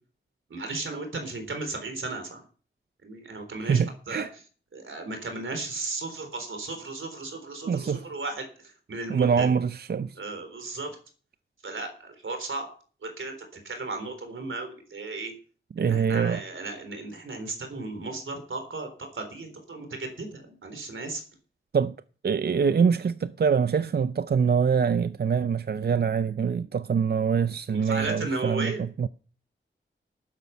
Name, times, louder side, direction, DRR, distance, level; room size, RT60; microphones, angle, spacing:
voice 1, 0.5-2.4 3.0-4.2 4.7-9.5 10.2-11.0 11.6-12.7 13.0-15.3 15.8-21.2 27.7-28.8, right 3 dB, 80° right, 3.8 m, -35 dB
voice 2, 3.6-4.3 7.7-8.1 9.1-10.2 15.8-16.4 21.7-21.9 22.2-29.1, right 6 dB, 55° right, 0.5 m, -24 dB
12.5 x 9.8 x 5.7 m
wide cardioid pair, 100°, 20 cm